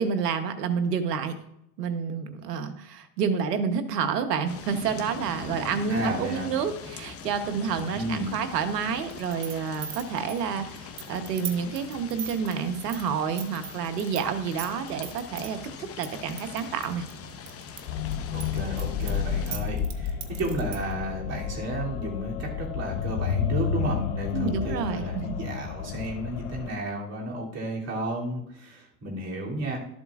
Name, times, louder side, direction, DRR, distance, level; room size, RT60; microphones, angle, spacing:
voice 1, 0.0-1.3 1.8-17.1 24.3-25.3, right 6 dB, 90° right, 9 dB, 1.1 m, -29 dB
sound 1, 4.5-19.6, left 6 dB, 30° left, 1.0 m, -42 dB
voice 2, 5.9-6.5 7.9-8.3 18.3-29.8, right 1 dB, 35° right, -3 dB, 3.0 m, -33 dB
sound 2, 9.1-14.2 14.5-15.5 16.0-17.8 18.1-20.9, right 10 dB, 60° right, 1.4 m, -38 dB
sound 3, 17.9-26.7, left 7 dB, 65° left, 0.8 m, -31 dB
12.5 x 7.8 x 2.5 m, 0.80 s
hypercardioid pair, 100°, 47 cm